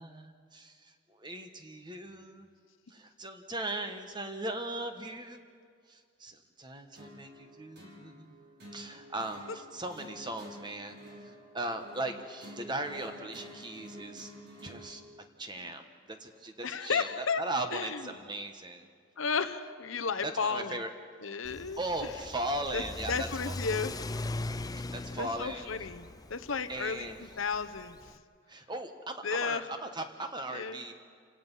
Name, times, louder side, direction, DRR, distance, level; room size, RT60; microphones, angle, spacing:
voice 1, 0.0-2.5 2.9-5.4 5.9-8.4 8.7-14.3 14.6-15.0 15.4-18.9 20.2-20.9 21.8-23.5 24.9-25.7 26.7-27.2 28.5-30.9, right 1 dB, 20° right, 6 dB, 1.4 m, -38 dB
sound 1, 7.0-14.9, equal, 55° right, 5.5 m, -50 dB
voice 2, 16.6-17.4 17.7-18.0 19.2-20.8 21.2-22.1 22.7-23.9 25.2-28.2 29.2-29.7 30.5-30.8, left 5 dB, 75° left, 9 dB, 0.9 m, -33 dB
Car / Accelerating revving vroom, 21.4-28.2, left 2 dB, 20° left, 0.5 m, -40 dB
28.0 x 17.5 x 5.6 m, 2.1 s
head